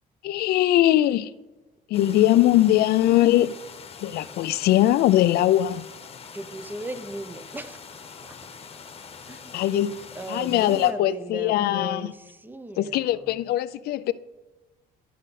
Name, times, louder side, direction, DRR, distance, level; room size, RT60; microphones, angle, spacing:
voice 1, 0.2-1.3 1.9-3.5 4.0-5.8 9.5-10.0 10.3-12.1 12.8-14.1, left 13 dB, 70° left, 0.4 m, -21 dB
sound 1, 1.9-10.9, left 5 dB, 35° left, 1.0 m, -43 dB
voice 2, 2.0-2.3 6.3-7.8 9.3-9.6 10.1-13.4, right 2 dB, 10° right, 0.6 m, -37 dB
12.0 x 5.0 x 4.2 m
cardioid pair, 110°, 17 cm